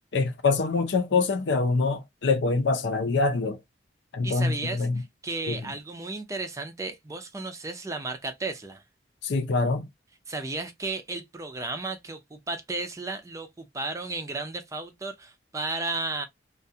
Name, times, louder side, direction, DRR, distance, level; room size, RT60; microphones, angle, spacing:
voice 1, 0.1-3.6 4.1-5.0 5.5-5.6 9.2-9.9, left 3 dB, 80° left, 0.6 m, -25 dB
voice 2, 4.2-8.8 10.3-16.3, right 3 dB, 15° right, 0.4 m, -34 dB
2.4 x 2.3 x 2.6 m
head